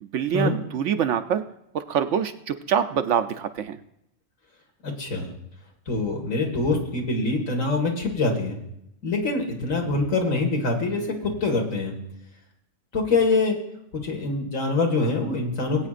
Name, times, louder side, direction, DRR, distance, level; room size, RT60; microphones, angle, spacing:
voice 1, 0.0-1.4 1.7-3.8, right 8 dB, 65° right, 9 dB, 0.8 m, -25 dB
voice 2, 4.8-5.3 5.9-8.6 9.0-11.9 12.9-13.6 14.0-15.9, left 3 dB, 70° left, 1 dB, 2.2 m, -24 dB
21.0 x 8.7 x 2.5 m, 0.79 s
omnidirectional pair, 1.4 m